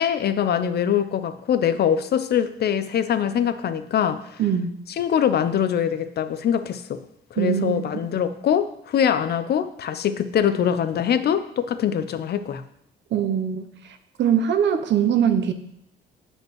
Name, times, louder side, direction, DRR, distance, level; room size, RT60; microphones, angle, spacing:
voice 1, 0.0-4.4 5.0-7.0 7.3-12.6, left 8 dB, 55° left, 12 dB, 0.5 m, -23 dB
voice 2, 4.4-4.7 7.4-7.8 13.1-13.6 14.2-15.5, right 8 dB, 65° right, 7 dB, 0.7 m, -21 dB
7.4 x 5.3 x 3.0 m, 0.76 s
cardioid pair, 90°, 20 cm